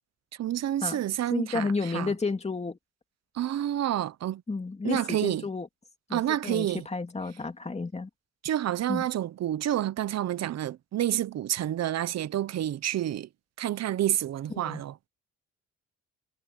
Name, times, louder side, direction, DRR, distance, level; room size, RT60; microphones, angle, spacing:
voice 1, 0.4-2.1 3.3-4.4 4.8-5.4 6.1-6.8 8.4-13.3 13.6-14.9, right 12 dB, 60° right, 0.8 m, -29 dB
voice 2, 1.3-2.8 4.5-5.7 6.1-8.1 8.9-9.0 14.5-14.8, left 3 dB, 20° left, 2.7 m, -31 dB
cardioid pair, 90°, 30 cm